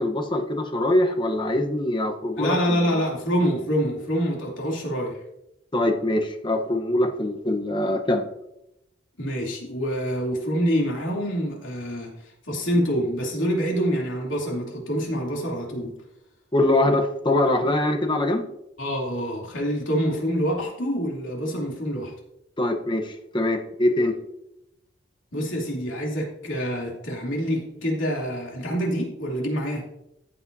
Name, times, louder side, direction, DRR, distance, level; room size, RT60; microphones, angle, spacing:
voice 1, 0.0-3.0 5.7-8.2 16.5-18.5 22.6-24.1, left 1 dB, 25° left, 4 dB, 1.0 m, -23 dB
voice 2, 2.4-5.2 9.2-16.0 18.8-22.1 25.3-29.8, equal, 85° left, -2 dB, 3.0 m, -26 dB
14.5 x 8.0 x 2.7 m, 0.85 s
head